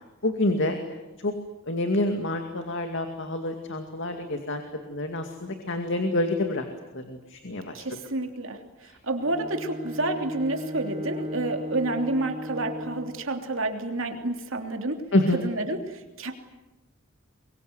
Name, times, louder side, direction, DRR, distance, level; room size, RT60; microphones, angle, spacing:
voice 1, 0.2-0.7 1.2-1.3 1.7-4.6 4.9-6.7 6.9-7.8 15.1-15.4, left 1 dB, 60° left, 5 dB, 2.3 m, -27 dB
voice 2, 7.7-15.0 15.3-16.3, right 2 dB, 70° right, 4 dB, 3.1 m, -29 dB
Bowed string instrument, 9.2-13.3, left 1 dB, 25° right, 4.5 m, -36 dB
23.5 x 23.0 x 9.5 m, 1.1 s
head